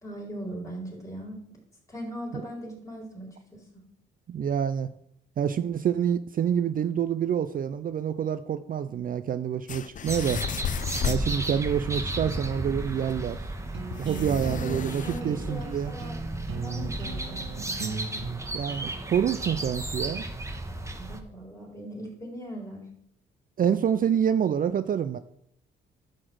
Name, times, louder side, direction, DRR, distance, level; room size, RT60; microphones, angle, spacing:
voice 1, 0.0-1.6 1.9-3.6 11.4-11.6 14.2-16.2 16.5-18.0 21.0-22.9, equal, 15° left, -2 dB, 4.5 m, -40 dB
voice 2, 4.3-4.9 5.4-10.4 11.0-13.4 14.0-15.9 18.5-20.2 23.6-25.2, right 8 dB, 45° right, 12 dB, 0.5 m, -27 dB
sound 1, 9.7-11.3 12.8-12.9 13.1-13.2 13.9-15.2, left 8 dB, 40° left, 0.5 m, -33 dB
sound 2, 10.1-21.2, right 1 dB, 15° right, 1.3 m, -34 dB
sound 3, 13.1-18.4, right 5 dB, 70° right, 1.4 m, -38 dB
11.0 x 4.3 x 7.7 m, 0.73 s
cardioid pair, 90°, 20 cm